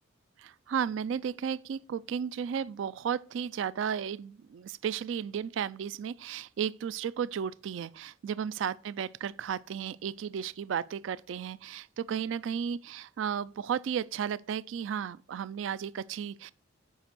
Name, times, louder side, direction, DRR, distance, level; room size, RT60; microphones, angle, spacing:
voice 1, 0.4-16.5, right 8 dB, 70° right, 0.3 m, -34 dB
7.9 x 5.1 x 6.0 m
head